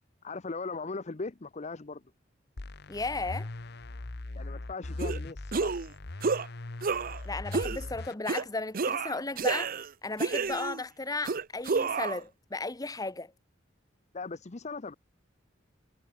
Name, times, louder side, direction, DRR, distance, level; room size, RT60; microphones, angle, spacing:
voice 1, 0.2-2.0 4.3-5.8 14.1-14.9, left 3 dB, 35° left, 0.8 m, -39 dB
sound 1, 2.6-8.1, left 2 dB, 60° left, 1.2 m, -40 dB
voice 2, 2.9-3.5 7.2-9.7 10.0-13.3, left 3 dB, 20° left, 1.1 m, -35 dB
sound 2, 5.0-5.2 5.5-5.9 6.2-6.5 6.8-7.2 7.5-7.8 8.3-8.4 8.7-9.9 10.2-10.8 11.3-12.2, right 4 dB, 50° right, 0.7 m, -30 dB
head